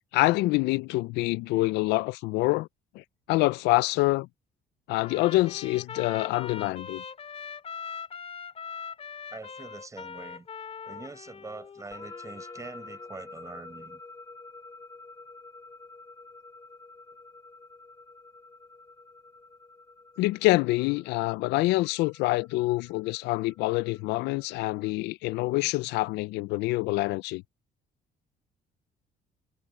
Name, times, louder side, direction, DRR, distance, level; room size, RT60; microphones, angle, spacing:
voice 1, 0.0-2.7 2.9-4.3 4.9-7.0 20.2-27.4, left 20 dB, 90° left, 0.4 m, -26 dB
Trumpet, 5.0-13.1, left 6 dB, 35° left, 3.9 m, -41 dB
voice 2, 9.3-10.5 10.9-14.0, right 3 dB, 20° right, 5.5 m, -44 dB
sound 1, 11.9-24.9, left 3 dB, 20° left, 2.6 m, -49 dB
cardioid pair, 110°, 17 cm